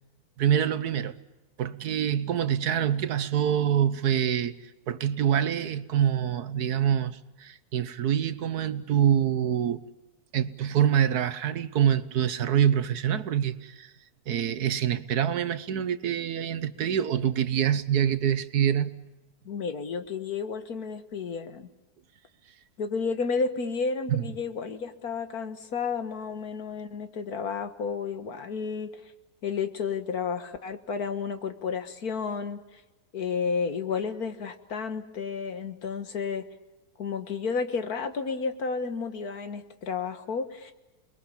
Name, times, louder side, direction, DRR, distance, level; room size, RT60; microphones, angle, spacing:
voice 1, 0.4-1.2 1.6-4.5 4.9-9.8 10.3-13.9 14.3-19.0 24.1-24.3, right 9 dB, 80° right, 1.6 m, -25 dB
voice 2, 19.5-21.7 22.8-28.9 29.4-32.6 33.1-36.5 37.0-40.7, left 5 dB, 70° left, 2.0 m, -31 dB
29.5 x 21.5 x 7.2 m
omnidirectional pair, 1.6 m